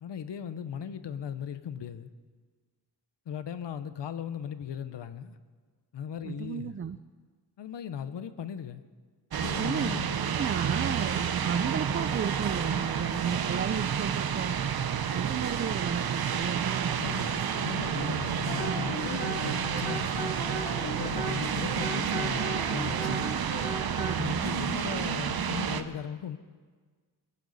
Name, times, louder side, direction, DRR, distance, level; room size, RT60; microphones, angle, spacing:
voice 1, 0.0-2.1 3.3-5.4 5.9-6.8 7.6-8.8 9.4-10.2 16.9-20.3 20.8-23.3 24.2-26.4, left 8 dB, 85° left, 12 dB, 0.9 m, -38 dB
voice 2, 6.2-7.0 9.5-10.0 10.4-14.6 15.1-17.0 18.0-18.1 21.3-21.4 24.0-24.4, right 7 dB, 30° right, 11 dB, 0.4 m, -34 dB
sound 1, 9.3-25.8, right 8 dB, 60° right, 0.9 m, -30 dB
Wind instrument woodwind instrument, 18.4-24.1, right 1 dB, 25° left, 4.1 m, -37 dB
20.5 x 15.5 x 4.1 m, 1.5 s
wide cardioid pair, 110°, 42 cm